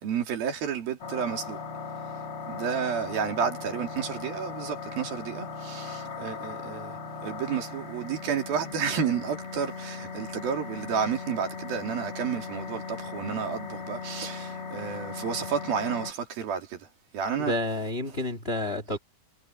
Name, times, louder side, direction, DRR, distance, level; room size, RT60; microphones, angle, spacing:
voice 1, 0.0-1.6 2.5-16.9 17.1-17.6, right 7 dB, 80° right, 4.9 m, -31 dB
sound 1, 1.0-16.1, left 5 dB, 40° left, 3.7 m, -38 dB
voice 2, 17.4-19.0, left 1 dB, 20° left, 1.7 m, -29 dB
omnidirectional pair, 4.2 m